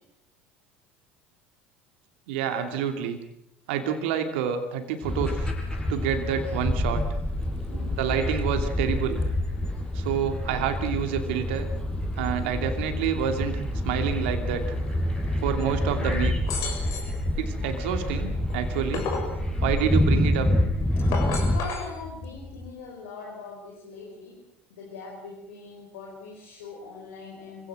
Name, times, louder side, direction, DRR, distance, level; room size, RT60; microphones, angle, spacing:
voice 1, 2.3-3.2 3.7-5.5 5.9-7.0 8.0-9.2 9.9-11.7 12.2-14.6 15.4-16.4 17.4-19.0 19.6-20.5, right 8 dB, 75° right, 6 dB, 2.7 m, -28 dB
sound 1, 5.0-22.7, left 4 dB, 40° left, 3.5 m, -41 dB
sound 2, 5.0-21.6, left 1 dB, 10° left, 7.3 m, -27 dB
voice 2, 7.5-7.9 21.0-21.1 21.5-24.4 24.7-27.7, left 4 dB, 80° left, -1 dB, 5.6 m, -41 dB
sound 3, 16.5-17.2 18.5-19.4 20.9-21.9, left 4 dB, 60° left, 6.7 m, -32 dB
25.0 x 17.0 x 7.9 m, 0.84 s
hypercardioid pair, 75°, 6 cm